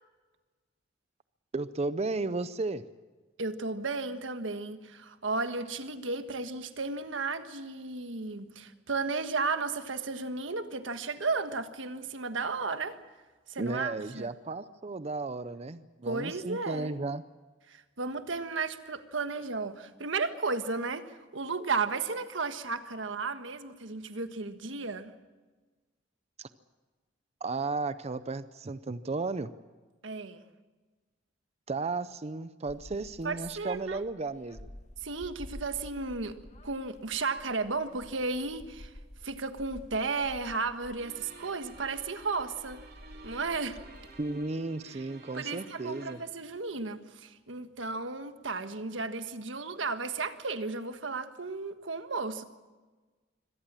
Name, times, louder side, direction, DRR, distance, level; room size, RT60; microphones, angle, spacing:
voice 1, 1.5-2.8 13.6-17.2 26.4-26.5 27.4-29.5 31.7-34.7 44.2-46.2, right 3 dB, 35° right, 13 dB, 0.6 m, -34 dB
voice 2, 3.4-13.0 13.5-14.3 16.1-16.9 17.7-25.1 30.0-30.4 33.2-34.0 35.0-36.3 36.6-38.9 39.2-42.8 43.2-43.8 44.9-45.0 45.3-52.4, right 4 dB, 90° right, 9 dB, 1.5 m, -34 dB
sound 1, 32.7-44.5, left 1 dB, 40° left, 1.5 m, -51 dB
sound 2, 41.0-46.1, right 3 dB, 55° right, 3.7 m, -51 dB
24.5 x 18.0 x 7.5 m, 1.3 s
head